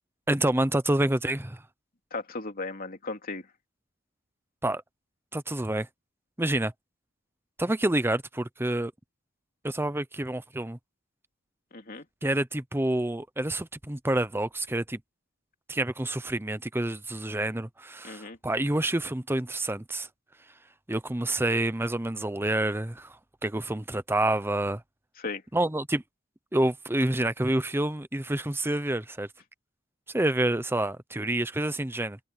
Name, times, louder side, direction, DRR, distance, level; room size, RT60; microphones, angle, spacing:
voice 1, 0.3-1.6 4.6-4.8 5.3-5.9 6.4-6.7 7.6-8.9 9.6-10.8 12.2-15.0 15.7-20.1 20.9-23.2 23.4-24.8 25.5-26.0 26.5-29.3 30.1-32.2, right 1 dB, 10° right, 0.8 m, -28 dB
voice 2, 2.1-3.4 11.7-12.0 18.0-18.4 25.2-25.4, left 3 dB, 45° left, 3.0 m, -36 dB
head